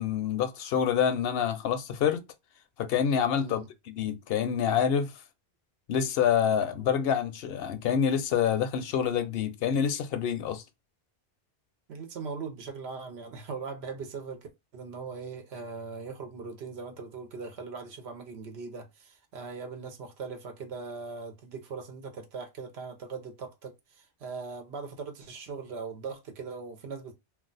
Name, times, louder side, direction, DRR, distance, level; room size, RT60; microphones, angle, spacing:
voice 1, 0.0-2.2 2.8-5.1 5.9-10.6, left 8 dB, 75° left, 0.8 m, -27 dB
voice 2, 3.4-3.7 6.8-6.9 11.9-27.1, right 4 dB, 90° right, 1.0 m, -40 dB
2.4 x 2.3 x 3.8 m
omnidirectional pair, 1.0 m